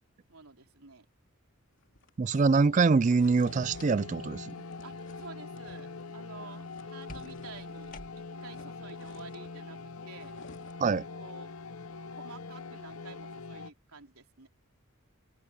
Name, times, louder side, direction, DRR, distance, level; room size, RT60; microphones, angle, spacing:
voice 1, 0.3-1.1 4.8-7.9 8.2-9.8 10.1-10.3 11.1-11.5 12.1-14.5, right 4 dB, 85° right, 3.5 m, -50 dB
sound 1, 1.7-8.0 8.3-11.0, left 2 dB, 55° left, 3.1 m, -57 dB
voice 2, 2.2-4.5 10.8-11.0, right 4 dB, 35° right, 0.3 m, -24 dB
sound 2, 2.3-13.7, left 3 dB, 75° left, 0.9 m, -43 dB
sound 3, 3.3-4.3 4.6-5.0 7.1-8.5, left 2 dB, 40° left, 2.2 m, -51 dB
head